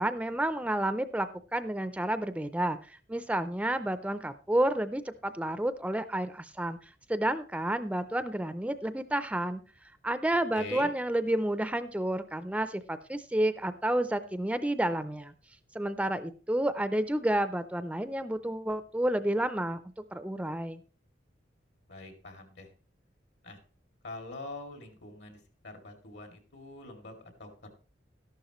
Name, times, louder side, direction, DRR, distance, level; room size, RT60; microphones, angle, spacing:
voice 1, 0.0-15.3 15.7-19.8 20.1-20.8, right 1 dB, 5° right, 11 dB, 0.4 m, -30 dB
voice 2, 10.5-10.9 21.9-22.7 23.4-23.6 24.0-25.4 25.6-27.7, left 2 dB, 75° left, 4 dB, 2.6 m, -44 dB
13.0 x 11.5 x 3.0 m, 0.37 s
head